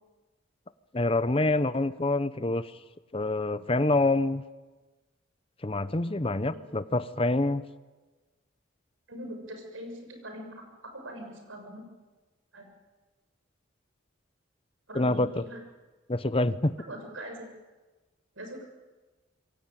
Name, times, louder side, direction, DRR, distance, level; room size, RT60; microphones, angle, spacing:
voice 1, 0.9-2.7 3.1-4.4 5.6-7.6 14.9-15.4 16.1-16.8, left 2 dB, 30° left, 14 dB, 0.8 m, -26 dB
voice 2, 9.1-10.5 10.9-11.9 12.5-12.7 14.9-15.6 16.9-17.5 18.4-18.6, equal, 85° right, 4 dB, 6.8 m, -42 dB
26.5 x 22.5 x 9.0 m, 1.2 s
head